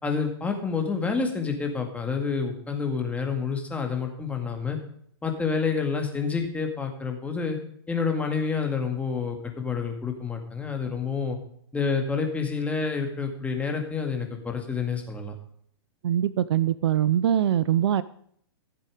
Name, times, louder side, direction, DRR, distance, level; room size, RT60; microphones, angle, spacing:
voice 1, 0.0-4.8 5.2-7.6 7.9-11.4 11.7-15.3, left 5 dB, 10° left, 3 dB, 2.1 m, -28 dB
voice 2, 16.0-18.0, right 10 dB, 70° right, 18 dB, 0.5 m, -23 dB
15.0 x 7.6 x 5.0 m, 0.64 s
hypercardioid pair, 125°, 14 cm